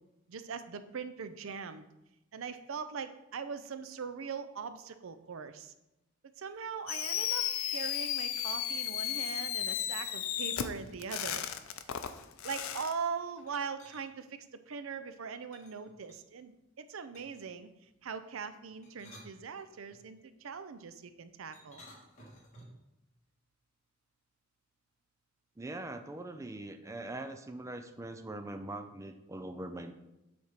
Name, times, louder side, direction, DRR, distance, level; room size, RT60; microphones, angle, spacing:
voice 1, 0.3-1.9 2.3-5.7 6.4-7.4 7.7-11.4 12.4-17.7 18.0-21.8, right 6 dB, 80° right, 11 dB, 0.5 m, -41 dB
Fireworks, 6.9-12.9, left 10 dB, 90° left, 0.5 m, -34 dB
sound 1, 13.3-14.1 15.5-16.4 17.1-17.5 18.7-20.0 21.5-22.9, equal, 35° left, 1.9 m, -55 dB
voice 2, 25.6-29.9, right 2 dB, 15° right, 7 dB, 0.4 m, -42 dB
7.6 x 3.5 x 5.7 m, 0.93 s
head